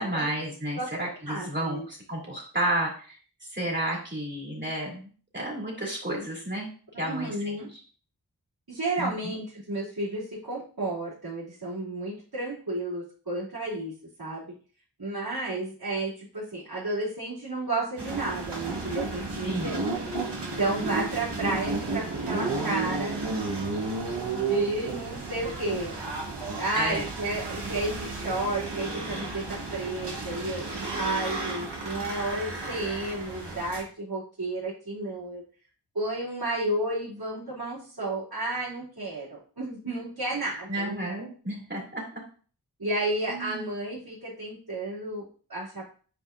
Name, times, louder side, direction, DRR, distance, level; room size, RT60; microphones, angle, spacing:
voice 1, 0.0-3.2 3.5-6.7 7.0-7.3 9.0-9.3 19.4-19.8 26.7-27.0 40.7-42.2 43.3-43.7, right 1 dB, 25° right, -2 dB, 3.4 m, -31 dB
voice 2, 1.3-1.8 7.0-7.7 8.7-14.5 15.0-19.9 20.6-23.2 24.3-25.9 26.6-30.7 30.9-35.4 35.9-41.1 42.8-45.9, right 2 dB, 65° right, -10 dB, 3.4 m, -32 dB
sound 1, 18.0-33.8, right 3 dB, 85° right, 1.7 m, -33 dB
9.5 x 4.9 x 2.7 m, 0.41 s
wide cardioid pair, 40°, 40 cm